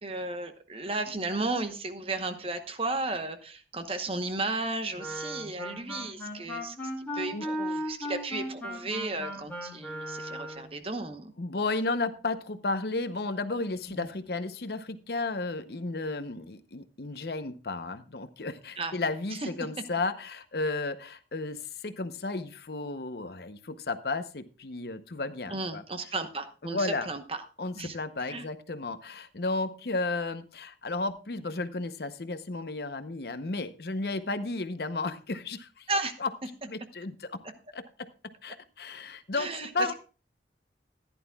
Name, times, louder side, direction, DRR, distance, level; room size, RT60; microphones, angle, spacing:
voice 1, 0.0-11.3 13.9-14.1 18.8-18.9 25.5-27.2 27.7-28.0 28.3-28.4 35.9-36.1 39.4-39.7, right 2 dB, 30° right, 8 dB, 1.0 m, -34 dB
Wind instrument woodwind instrument, 4.9-10.7, equal, 10° left, 3.4 m, -36 dB
voice 2, 11.4-25.8 26.6-27.1 27.6-35.9 36.2-36.3 36.7-37.4 37.7-38.1 38.4-39.9, left 3 dB, 60° left, 11 dB, 0.7 m, -33 dB
15.0 x 11.0 x 2.3 m, 0.35 s
head